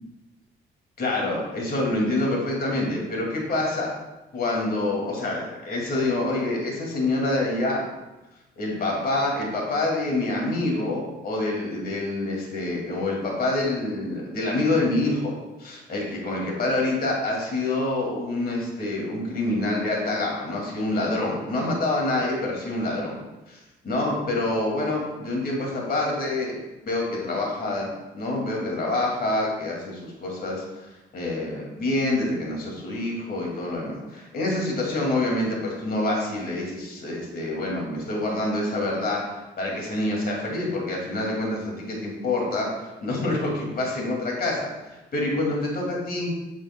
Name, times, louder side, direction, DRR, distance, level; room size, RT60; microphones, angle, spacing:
voice 1, 1.0-3.9 4.3-7.8 8.6-15.3 15.6-23.2 23.5-23.6 23.8-26.6 26.8-30.9 31.1-44.7 45.1-46.3, left 2 dB, 50° left, -1 dB, 2.2 m, -26 dB
8.6 x 8.3 x 2.2 m, 1.1 s
cardioid pair, 90°, 20 cm